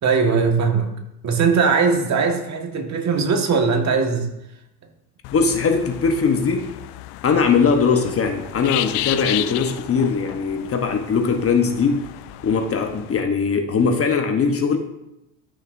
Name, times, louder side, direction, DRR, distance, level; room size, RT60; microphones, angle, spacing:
voice 1, 0.0-0.9 1.2-4.3, right 5 dB, 35° right, 1.6 m, -19 dB
sound 1, 5.2-13.2, left 15 dB, 60° left, 0.6 m, -33 dB
voice 2, 5.3-6.7 7.2-12.1 12.4-14.8, left 5 dB, 30° left, 1.0 m, -20 dB
13.5 x 6.3 x 2.6 m
hypercardioid pair, 90°, 47 cm